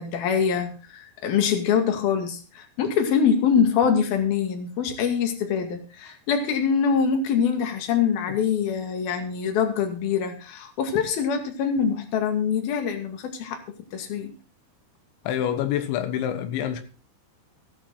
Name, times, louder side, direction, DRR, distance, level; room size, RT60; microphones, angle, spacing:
voice 1, 0.0-14.3, left 7 dB, 60° left, 3.9 m, -24 dB
voice 2, 15.3-16.8, left 10 dB, 90° left, 3.6 m, -26 dB
16.0 x 12.0 x 3.8 m
omnidirectional pair, 5.1 m